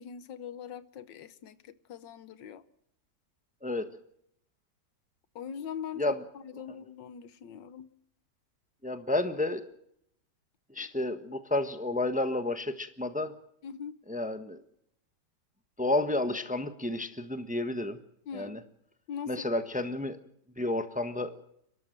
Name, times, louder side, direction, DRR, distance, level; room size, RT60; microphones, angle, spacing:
voice 1, 0.0-2.6 5.3-6.0 6.4-7.9 13.6-14.0 18.3-18.6 19.1-19.6, left 8 dB, 90° left, 1.7 m, -42 dB
voice 2, 8.8-9.6 10.7-13.3 14.1-14.6 15.8-18.0 18.3-18.6 19.3-20.2 20.6-21.3, left 2 dB, 5° right, 1.0 m, -31 dB
29.5 x 12.5 x 7.5 m
omnidirectional pair, 1.9 m